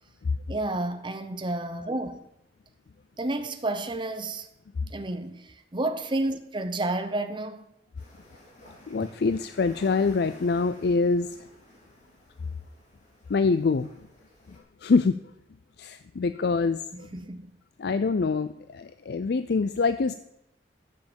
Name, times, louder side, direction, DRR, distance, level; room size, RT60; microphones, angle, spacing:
voice 1, 0.5-2.2 3.2-4.5 4.9-7.7 9.0-9.1 16.9-17.5, right 2 dB, 25° right, 0.9 m, -31 dB
sound 1, 8.0-14.6, left 1 dB, 45° left, 4.7 m, -53 dB
voice 2, 8.9-11.5 13.3-13.9 14.8-15.2 15.8-17.1 17.8-20.1, left 4 dB, 60° left, 0.4 m, -25 dB
13.0 x 7.5 x 7.1 m
head